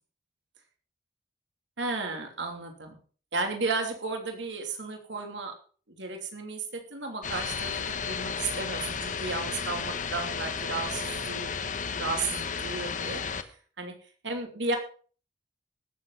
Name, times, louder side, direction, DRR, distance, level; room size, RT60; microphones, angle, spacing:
voice 1, 1.8-3.0 3.3-5.5 5.9-11.5 12.0-13.5 13.8-13.9 14.2-14.8, right 3 dB, 80° right, 4 dB, 3.0 m, -33 dB
sound 1, 7.2-13.4, left 6 dB, 45° left, 1.0 m, -33 dB
17.5 x 7.6 x 5.7 m, 0.42 s
head